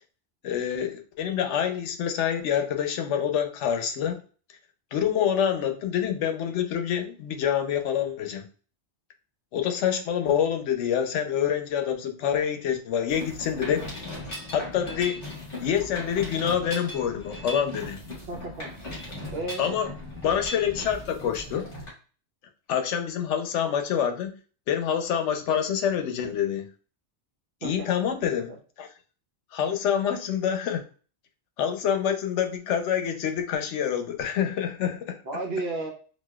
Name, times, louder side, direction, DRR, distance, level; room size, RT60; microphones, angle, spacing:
voice 1, 0.4-4.2 4.9-8.5 9.5-13.9 14.5-15.2 15.6-18.0 19.6-19.9 20.2-21.7 22.7-24.3 24.7-26.7 27.6-28.5 28.8-28.9 29.5-30.8 31.6-35.2, left 8 dB, 85° left, 6 dB, 0.9 m, -26 dB
Mechanisms, 13.1-21.9, left 1 dB, 50° left, 1.7 m, -38 dB
voice 2, 18.3-18.7 19.3-19.7 27.6-27.9 28.5-28.6 35.2-35.9, right 2 dB, 65° right, 1 dB, 1.0 m, -33 dB
4.1 x 2.4 x 2.2 m, 0.38 s
omnidirectional pair, 1.2 m